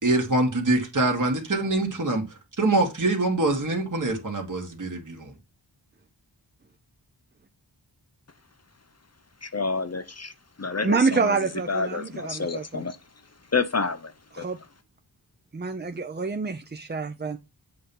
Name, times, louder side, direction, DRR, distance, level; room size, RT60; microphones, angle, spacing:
voice 1, 0.0-5.3, right 2 dB, 45° right, 1.7 m, -24 dB
voice 2, 9.4-10.3 10.6-13.0 13.5-14.5, left 4 dB, 35° left, 0.6 m, -29 dB
voice 3, 10.8-12.8 14.4-14.6 15.5-17.4, right 4 dB, 25° right, 0.5 m, -27 dB
7.7 x 2.9 x 5.3 m
wide cardioid pair, 55°, 44 cm